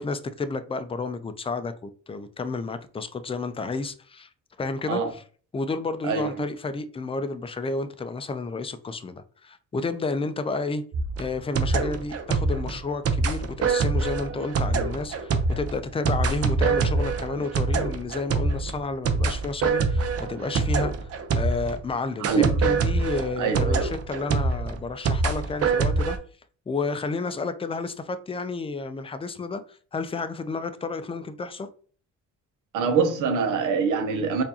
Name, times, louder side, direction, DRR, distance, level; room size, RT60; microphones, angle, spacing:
voice 1, 0.0-4.3 4.6-5.2 5.5-10.8 11.2-21.1 21.4-26.2 26.7-31.7, left 3 dB, 20° left, 0.4 m, -31 dB
sound 1, 10.9-21.8 22.2-26.2, right 4 dB, 50° right, 0.7 m, -25 dB
voice 2, 22.2-22.6 23.4-23.8 32.7-34.4, right 5 dB, 85° right, 0.9 m, -24 dB
4.4 x 2.6 x 2.8 m
cardioid pair, 90°, 30 cm